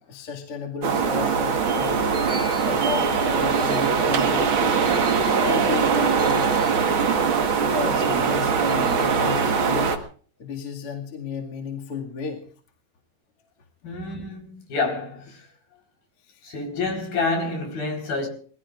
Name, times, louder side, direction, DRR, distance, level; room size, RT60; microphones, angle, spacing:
voice 1, 0.1-2.0 2.6-4.8 5.4-6.6 7.7-10.0 10.4-12.4 13.8-14.2 16.3-16.5, left 5 dB, 40° left, 2.5 m, -33 dB
sound 1, 0.8-10.0, right 5 dB, 80° right, 1.1 m, -22 dB
voice 2, 13.8-15.5 16.4-18.3, left 3 dB, 60° left, 5.9 m, -28 dB
27.5 x 21.0 x 2.5 m
omnidirectional pair, 4.8 m